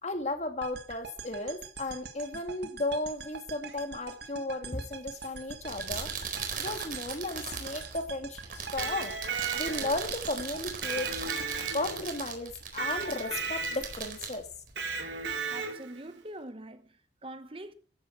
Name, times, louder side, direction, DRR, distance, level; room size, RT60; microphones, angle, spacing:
voice 1, 0.0-9.1 9.5-14.5, left 2 dB, 40° left, 2.1 m, -35 dB
sound 1, 0.6-12.8, right 5 dB, 65° right, 1.8 m, -45 dB
sound 2, 5.5-15.3, right 6 dB, 50° right, 4.1 m, -39 dB
Electric guitar, 8.6-10.1 10.8-12.2 12.8-14.0 14.8-16.0, right 5 dB, 85° right, 3.4 m, -35 dB
voice 2, 15.5-17.7, right 1 dB, 30° right, 1.2 m, -44 dB
14.5 x 10.0 x 6.1 m
head